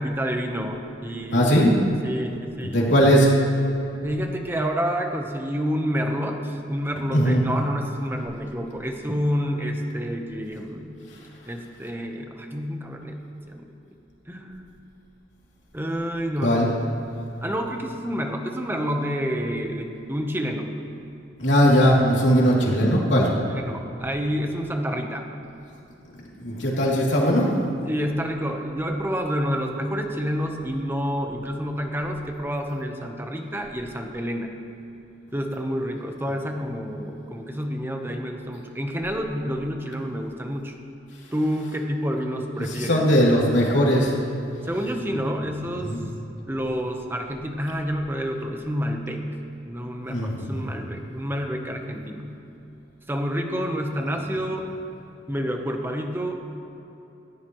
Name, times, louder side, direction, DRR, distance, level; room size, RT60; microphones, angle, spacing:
voice 1, 0.0-1.7 2.0-2.8 4.0-11.0 11.5-13.2 13.5-13.7 14.3-14.7 15.7-16.7 17.4-20.7 23.4-25.2 27.9-34.5 35.3-40.8 41.3-43.0 44.6-45.9 46.5-49.2 49.6-52.4 53.1-54.7 55.3-56.3, equal, 10° right, 3 dB, 1.0 m, -28 dB
voice 2, 1.3-1.7 2.6-3.3 7.1-7.4 16.4-16.7 21.4-23.3 26.4-27.5 42.7-44.1 45.8-46.0 50.1-50.6, equal, 75° left, -4 dB, 2.9 m, -19 dB
18.0 x 14.5 x 3.1 m, 2.9 s
head